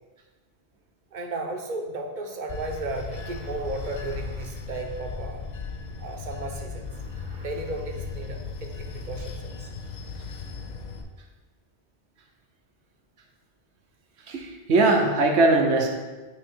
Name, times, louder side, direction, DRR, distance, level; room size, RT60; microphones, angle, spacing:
voice 1, 1.1-5.5 6.0-9.7, right 2 dB, 50° right, 3 dB, 0.9 m, -35 dB
Bell / Train, 2.5-11.0, left 4 dB, 50° left, 0.6 m, -36 dB
voice 2, 14.3-15.9, right 2 dB, 85° right, 2 dB, 1.2 m, -20 dB
8.4 x 3.0 x 4.4 m, 1.2 s
omnidirectional pair, 1.1 m